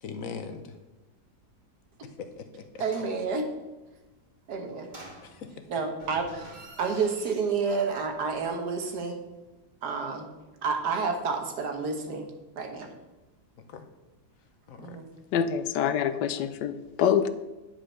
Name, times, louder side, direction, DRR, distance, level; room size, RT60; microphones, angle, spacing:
voice 1, 0.0-0.8 2.0-2.8 5.2-5.7 13.6-13.9 14.7-15.0, left 5 dB, 60° left, 8 dB, 1.0 m, -41 dB
sound 1, 2.8-3.2 4.8-5.6 5.9-8.2 8.5-8.6, right 1 dB, 25° right, 2.2 m, -48 dB
voice 2, 2.8-3.5 4.5-4.9 5.7-6.3 6.8-9.2 9.8-10.3 10.6-12.3 12.6-12.9 14.8-15.1, right 5 dB, 70° right, 4 dB, 1.8 m, -29 dB
voice 3, 15.3-17.3, left 8 dB, 85° left, 12 dB, 1.3 m, -26 dB
9.3 x 5.1 x 6.4 m, 1.1 s
omnidirectional pair, 1.8 m